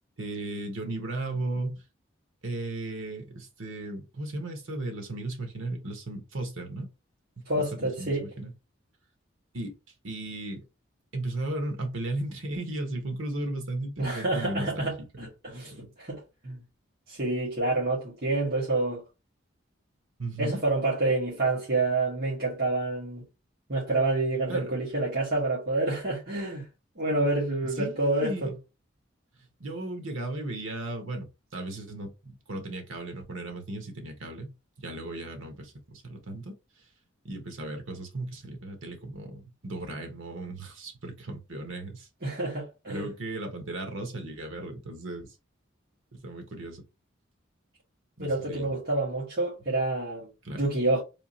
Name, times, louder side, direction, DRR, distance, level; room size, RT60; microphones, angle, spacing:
voice 1, 0.2-1.8 2.4-6.9 7.4-8.5 9.5-9.8 10.0-10.6 11.1-14.9 15.6-15.9 20.2-20.6 24.5-24.7 27.6-28.6 29.6-34.5 34.8-36.5 37.2-42.1 42.9-45.3 46.1-46.8 48.2-48.8 50.4-50.6, right 2 dB, 80° right, 1.2 m, -36 dB
voice 2, 7.4-8.3 14.0-16.6 17.1-19.0 20.4-23.2 23.7-26.6 27.0-28.5 42.2-43.1 48.2-51.0, right 2 dB, 50° right, 1.5 m, -28 dB
3.6 x 2.8 x 2.8 m
head